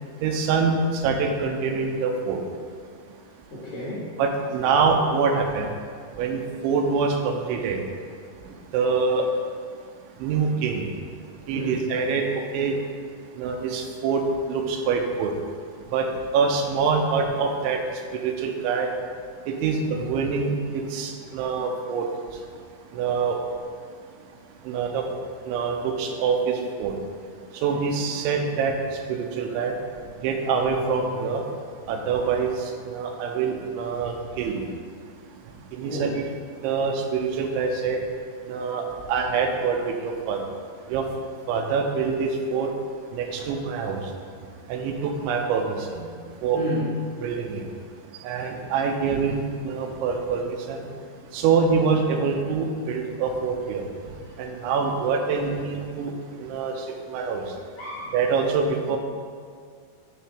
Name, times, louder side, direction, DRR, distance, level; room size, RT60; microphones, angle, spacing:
voice 1, 0.2-2.4 4.2-5.7 6.2-7.8 8.7-9.3 10.2-10.9 11.5-12.7 13.4-14.2 14.5-15.3 15.9-16.1 16.3-17.8 18.2-18.9 19.5-22.1 22.9-23.4 24.7-25.0 25.5-26.9 27.6-28.7 29.1-29.7 30.2-31.4 31.9-32.5 32.9-34.7 35.7-36.2 36.6-38.0 38.5-38.8 39.1-40.4 40.9-41.0 41.5-42.7 43.1-44.0 44.7-46.1 46.4-46.6 47.2-47.6 48.2-50.8 51.3-53.8 54.4-56.1 56.4-56.7 57.1-57.4 58.1-59.0, right 5 dB, 90° right, 3 dB, 3.0 m, -25 dB
voice 2, 3.5-4.1 11.5-11.9 35.9-36.2 43.4-43.5 46.5-46.8 54.0-54.5 57.8-58.2, left 1 dB, 60° left, -8 dB, 2.5 m, -32 dB
9.3 x 3.4 x 4.9 m, 2.1 s
omnidirectional pair, 5.3 m